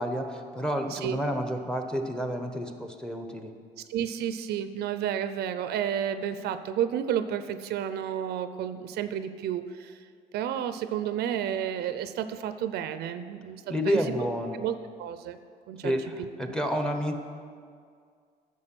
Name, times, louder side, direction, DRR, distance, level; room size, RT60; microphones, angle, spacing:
voice 1, 0.0-3.5 13.7-14.6 15.8-17.2, equal, 5° left, 5 dB, 0.9 m, -30 dB
voice 2, 3.9-10.0 10.3-14.0 14.5-15.4 15.7-15.9, right 9 dB, 75° right, 11 dB, 0.5 m, -31 dB
10.5 x 7.2 x 6.0 m, 2.2 s
cardioid pair, 110°, 17 cm